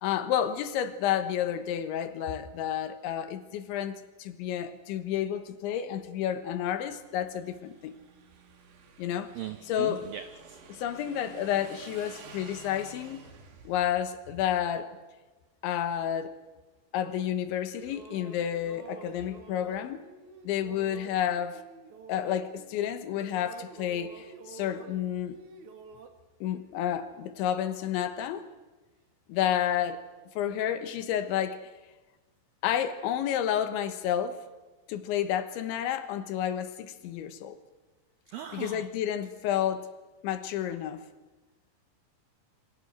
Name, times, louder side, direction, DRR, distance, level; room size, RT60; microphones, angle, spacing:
voice 1, 0.0-8.0 9.0-9.3 9.7-10.0 10.7-13.2 13.7-14.9 15.6-16.4 16.9-20.0 20.4-21.6 22.1-25.4 26.4-28.5 29.3-30.0 30.4-31.7 32.6-34.4 34.9-37.6 38.5-39.9 40.2-41.1, left 10 dB, 85° left, 3.6 m, -30 dB
Motorcycle / Engine, 6.9-13.9, right 4 dB, 70° right, 4.5 m, -51 dB
voice 2, 9.4-10.6 38.3-38.9, right 10 dB, 85° right, 2.0 m, -39 dB
sound 1, 17.5-22.8 23.1-26.1, right 4 dB, 55° right, 2.6 m, -49 dB
28.0 x 25.0 x 6.4 m
omnidirectional pair, 5.3 m